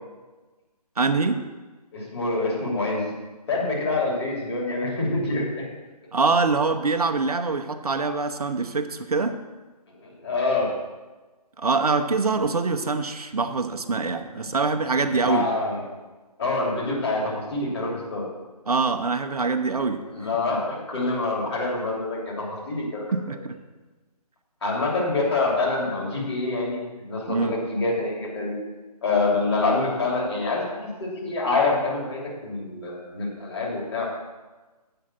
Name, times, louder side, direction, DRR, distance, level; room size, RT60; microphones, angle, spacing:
voice 1, 1.0-1.4 6.1-9.3 11.6-15.5 18.7-20.0 23.1-23.5 27.3-27.6, right 4 dB, 65° right, 6 dB, 0.8 m, -24 dB
voice 2, 1.9-3.1 3.5-5.6 9.9-10.7 14.4-14.5 15.1-15.8 16.4-18.3 20.1-23.0 24.6-28.6 29.0-34.1, left 3 dB, 40° left, -4 dB, 3.1 m, -26 dB
7.7 x 5.5 x 7.5 m, 1.2 s
figure-of-eight pair, 150°, 21 cm